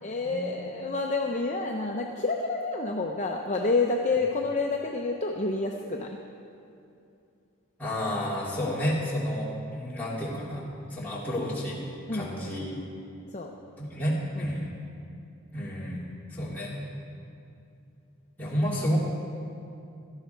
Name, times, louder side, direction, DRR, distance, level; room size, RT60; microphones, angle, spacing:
voice 1, 0.0-6.1 12.1-12.8 13.3-13.5 14.4-14.5, left 3 dB, 30° left, 0 dB, 0.7 m, -29 dB
voice 2, 7.8-10.6 10.9-11.8 12.1-12.7 13.8-14.7 15.5-16.8 18.4-19.0, equal, 10° left, -7 dB, 2.9 m, -30 dB
17.0 x 12.5 x 4.5 m, 2.6 s
head